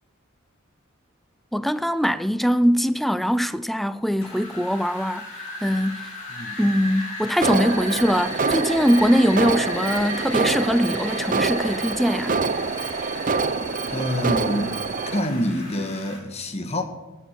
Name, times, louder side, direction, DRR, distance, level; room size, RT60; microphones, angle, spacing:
voice 1, 1.5-5.3 5.6-6.1 6.6-12.4, equal, ahead, 0.4 m, -22 dB
Wind, 4.2-16.2, left 1 dB, 85° left, 4.9 m, -36 dB
Alarm, 7.4-15.2, right 4 dB, 40° right, 0.6 m, -26 dB
voice 2, 13.9-14.8 15.1-16.8, equal, 30° left, 1.5 m, -26 dB
19.0 x 8.1 x 5.9 m
head